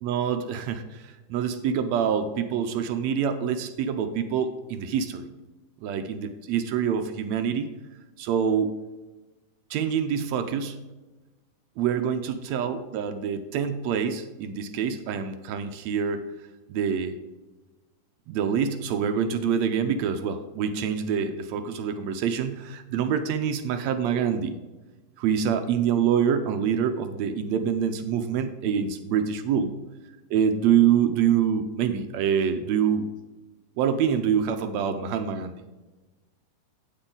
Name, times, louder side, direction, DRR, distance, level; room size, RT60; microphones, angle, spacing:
voice 1, 0.0-5.3 5.8-7.7 8.2-8.7 9.7-10.8 11.8-16.2 16.7-17.2 18.3-24.5 25.2-29.7 30.3-33.1 33.8-35.6, right 8 dB, 80° right, 8 dB, 1.6 m, -26 dB
8.8 x 8.5 x 3.9 m, 1.1 s
omnidirectional pair, 3.8 m